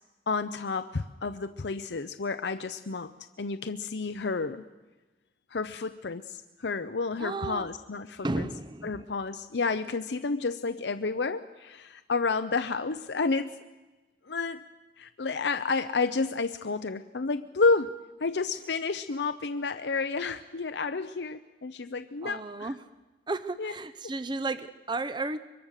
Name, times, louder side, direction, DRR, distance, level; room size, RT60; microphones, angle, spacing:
voice 1, 0.3-3.1 3.4-4.6 5.5-8.5 8.8-13.6 14.2-14.7 15.0-22.7 23.6-23.7, left 4 dB, 75° left, 10 dB, 0.7 m, -30 dB
voice 2, 7.2-7.7 8.2-9.1 22.2-22.8 23.3-25.4, right 2 dB, 25° right, 12 dB, 0.7 m, -33 dB
24.0 x 22.5 x 6.6 m, 1.2 s
head